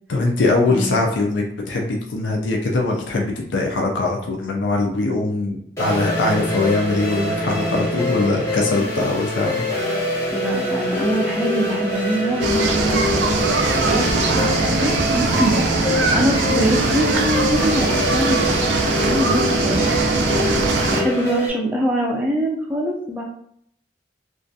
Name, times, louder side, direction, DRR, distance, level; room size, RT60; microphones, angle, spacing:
voice 1, 0.1-9.5 15.2-15.4 19.1-19.4, left 2 dB, 85° left, 1 dB, 0.4 m, -22 dB
sound 1, 5.8-21.5, left 1 dB, 15° left, 0.7 m, -25 dB
voice 2, 10.3-18.7 19.0-19.9 20.9-23.2, right 1 dB, 10° right, -2 dB, 0.3 m, -24 dB
sound 2, 12.4-21.0, right 3 dB, 85° right, 0.4 m, -21 dB
2.4 x 2.2 x 2.6 m, 0.69 s
head